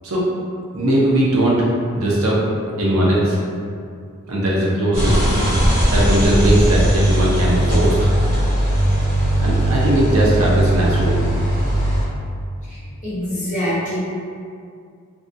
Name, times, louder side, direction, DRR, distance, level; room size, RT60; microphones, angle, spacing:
voice 1, 0.7-1.7 1.9-2.4 2.8-3.4 4.3-5.4 5.9-8.0 9.4-11.2, right 1 dB, 75° right, -5 dB, 0.6 m, -19 dB
sound 1, 4.9-12.0, equal, 40° right, 0.8 m, -18 dB
voice 2, 13.0-14.0, equal, 35° left, -9 dB, 0.7 m, -24 dB
2.5 x 2.2 x 2.5 m, 2.3 s
head